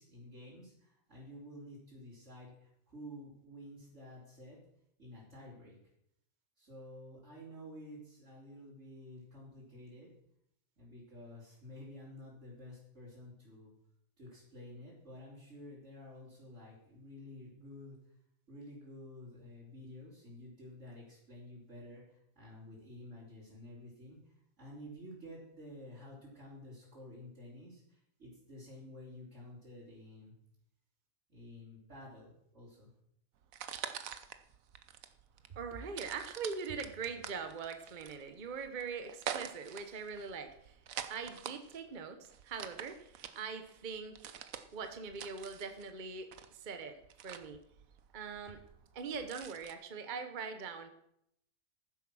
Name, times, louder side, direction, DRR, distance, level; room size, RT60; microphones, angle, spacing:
voice 1, 0.0-4.6 5.0-5.8 6.6-10.1 10.8-13.7 14.2-18.0 18.5-30.3 31.3-32.9, left 1 dB, 60° right, -8 dB, 4.2 m, -51 dB
sound 1, 33.4-49.7, right 9 dB, 80° right, 1.2 m, -46 dB
voice 2, 35.5-40.7 41.1-44.3 44.7-47.6 48.1-48.6 48.9-50.9, right 5 dB, 40° right, 7 dB, 1.0 m, -42 dB
14.5 x 7.8 x 6.2 m, 0.75 s
omnidirectional pair, 1.4 m